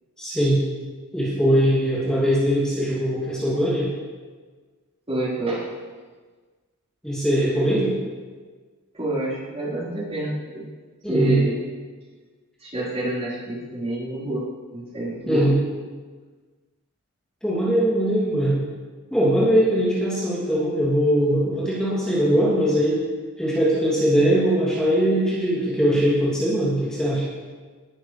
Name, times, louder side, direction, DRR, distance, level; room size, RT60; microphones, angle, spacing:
voice 1, 0.2-0.6 1.1-3.9 7.0-7.9 11.0-11.4 15.2-15.5 17.4-18.6 19.1-23.0 23.4-27.2, equal, 5° left, -9 dB, 2.8 m, -21 dB
voice 2, 5.1-5.7 8.9-10.7 11.1-11.6 12.6-14.4 14.7-15.5, right 2 dB, 30° right, -7 dB, 4.4 m, -27 dB
20.0 x 9.9 x 3.4 m, 1.4 s
head